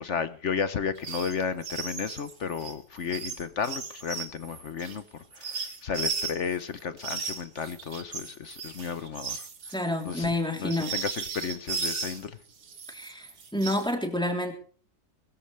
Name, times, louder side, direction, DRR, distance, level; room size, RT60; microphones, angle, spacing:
voice 1, 0.0-9.5 10.0-10.3 10.6-12.4, left 6 dB, 50° left, 1.0 m, -33 dB
sound 1, 1.0-1.3 1.6-6.6 7.0-12.2 12.6-13.9, right 5 dB, 75° right, 2.6 m, -36 dB
voice 2, 9.7-10.9 12.9-14.5, left 1 dB, ahead, 3.3 m, -29 dB
22.0 x 14.0 x 3.3 m
omnidirectional pair, 2.0 m